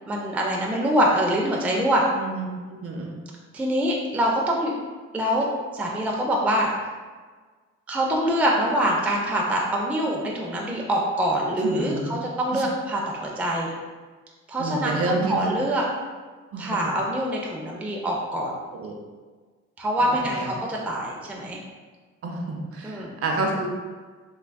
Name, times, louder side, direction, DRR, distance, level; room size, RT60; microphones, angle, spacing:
voice 1, 0.1-2.0 3.5-4.7 5.1-5.5 5.7-6.7 7.9-13.7 14.5-15.8 16.6-18.5 19.8-21.6 22.8-23.2, right 1 dB, 5° right, -2 dB, 0.3 m, -24 dB
voice 2, 2.1-3.1 11.6-12.1 12.5-12.6 14.6-15.4 16.5-16.7 18.8-19.0 20.0-20.5 22.2-23.7, right 2 dB, 50° right, 0 dB, 0.6 m, -29 dB
3.4 x 2.3 x 2.2 m, 1.4 s
cardioid pair, 90°, 30 cm